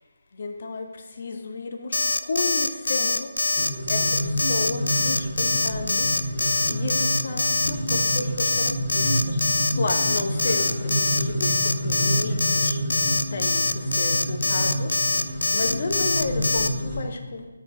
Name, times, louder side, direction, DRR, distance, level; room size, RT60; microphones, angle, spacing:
voice 1, 0.4-0.9 1.2-2.0 2.3-3.3 3.9-4.0 4.5-6.1 6.7-9.4 9.7-12.8 13.3-13.6 14.0-15.0 15.5-17.5, left 3 dB, 45° left, 5 dB, 0.8 m, -31 dB
Alarm, 1.9-16.7, left 3 dB, 65° left, 0.4 m, -24 dB
sound 1, 3.6-17.0, equal, 20° left, 1.9 m, -29 dB
7.1 x 4.6 x 5.2 m, 1.2 s
figure-of-eight pair, 150°, 0 cm